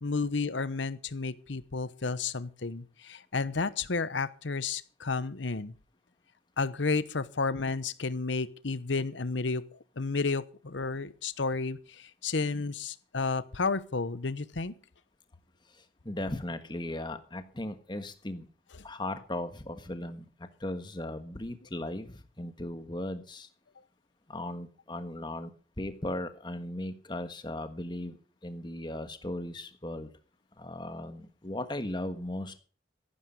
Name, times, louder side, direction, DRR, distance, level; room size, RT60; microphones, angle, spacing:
voice 1, 0.0-5.7 6.6-9.7 10.0-14.7, left 4 dB, 75° left, 16 dB, 0.9 m, -32 dB
voice 2, 16.0-18.5 18.8-23.5 24.3-25.5 25.8-28.2 28.4-30.1 30.6-32.6, left 1 dB, 25° left, 9 dB, 1.4 m, -37 dB
14.5 x 12.0 x 5.3 m, 0.39 s
head